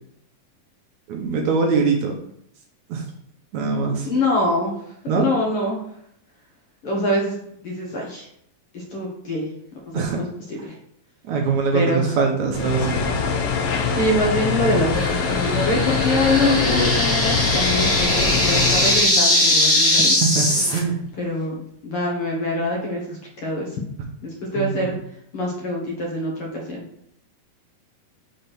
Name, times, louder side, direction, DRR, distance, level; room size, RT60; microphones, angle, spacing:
voice 1, 1.1-2.2 2.9-3.1 3.5-4.1 5.1-5.2 9.9-10.2 11.3-13.1 20.2-21.0 24.6-24.9, right 5 dB, 70° right, 2 dB, 2.1 m, -22 dB
voice 2, 3.8-4.8 5.1-5.8 6.8-7.4 7.6-8.2 8.9-9.5 9.9-10.8 11.7-12.2 14.0-20.1 21.2-23.7 24.2-24.9 25.3-26.8, left 1 dB, 55° left, -2 dB, 1.9 m, -24 dB
sound 1, 12.5-19.1, left 5 dB, 75° left, 1.4 m, -23 dB
sound 2, 14.9-20.8, left 1 dB, 20° left, 0.3 m, -20 dB
6.4 x 3.6 x 6.0 m, 0.72 s
omnidirectional pair, 3.7 m